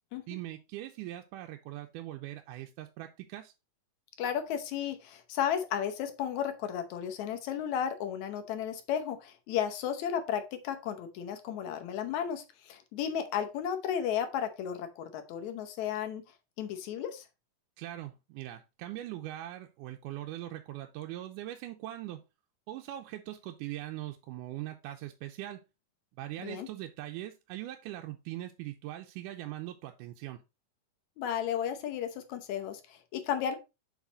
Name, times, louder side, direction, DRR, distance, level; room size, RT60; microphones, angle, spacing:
voice 1, 0.3-3.5 17.8-22.2 22.7-25.6 26.2-30.4, right 14 dB, 85° right, 4 dB, 2.1 m, -41 dB
voice 2, 4.2-16.2 16.6-17.2 26.4-26.7 31.2-33.6, left 9 dB, 70° left, 7 dB, 2.1 m, -34 dB
7.3 x 4.1 x 3.9 m, 0.26 s
omnidirectional pair, 3.6 m